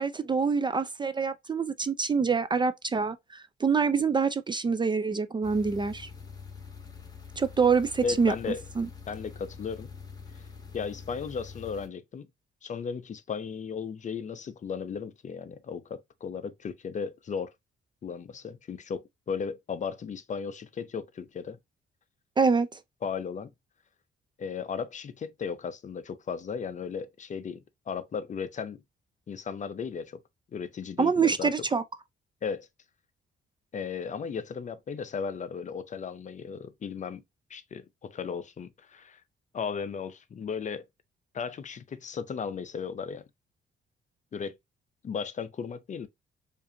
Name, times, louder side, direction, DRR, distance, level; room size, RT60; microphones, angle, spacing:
voice 1, 0.0-6.1 7.4-8.3 8.8-8.9 22.4-22.8 31.0-31.8, right 5 dB, 25° right, 0.3 m, -26 dB
sound 1, 5.4-11.9, left 5 dB, 20° left, 1.1 m, -45 dB
voice 2, 8.0-8.6 9.1-9.9 10.7-12.3 12.6-17.5 18.0-21.6 23.0-23.5 24.4-28.8 29.3-30.2 30.5-31.5 32.4-32.7 33.7-37.2 37.5-39.2 39.5-40.8 41.3-43.2 44.3-44.6 45.0-46.1, left 6 dB, 40° left, 0.5 m, -35 dB
4.7 x 2.6 x 2.6 m
cardioid pair, 90°, 20 cm